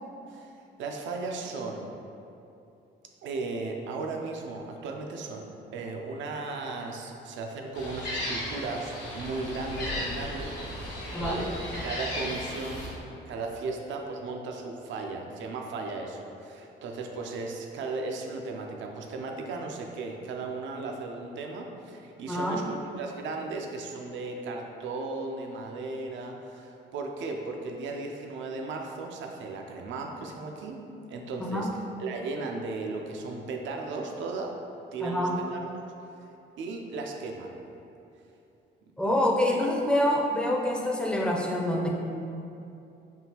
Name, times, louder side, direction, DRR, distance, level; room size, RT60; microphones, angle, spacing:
voice 1, 0.3-2.0 3.2-30.8 31.1-34.6 34.9-35.7 36.2-36.3 36.6-37.6, right 3 dB, 70° right, 2 dB, 0.4 m, -36 dB
Gull seagull, 7.7-12.9, left 1 dB, 70° left, 1.2 m, -35 dB
voice 2, 22.3-22.6 31.4-31.7 35.0-35.4 39.0-41.9, left 1 dB, 5° left, -1 dB, 0.4 m, -26 dB
3.6 x 2.4 x 2.8 m, 2.7 s
cardioid pair, 90°, 20 cm